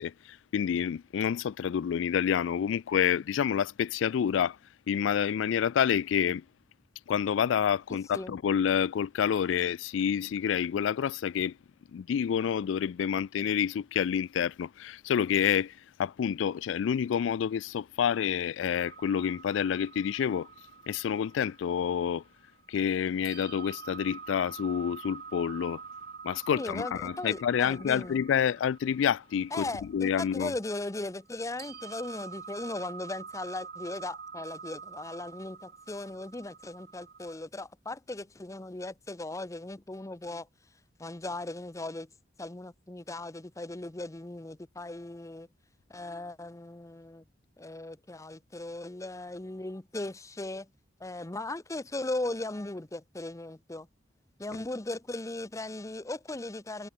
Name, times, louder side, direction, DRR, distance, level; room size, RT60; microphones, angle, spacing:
voice 1, 0.0-4.6 4.9-6.4 7.1-11.5 11.9-15.7 16.0-20.5 20.9-22.2 22.7-25.8 26.2-30.5, left 8 dB, 85° left, 0.3 m, -28 dB
sound 1, 18.8-22.8 23.2-31.3 31.6-37.4, right 5 dB, 55° right, 6.4 m, -47 dB
voice 2, 26.5-28.2 29.5-40.5 41.0-42.1 42.4-45.5 45.9-47.2 47.6-50.7 51.0-53.9 54.4-56.9, left 2 dB, 15° left, 0.7 m, -38 dB
head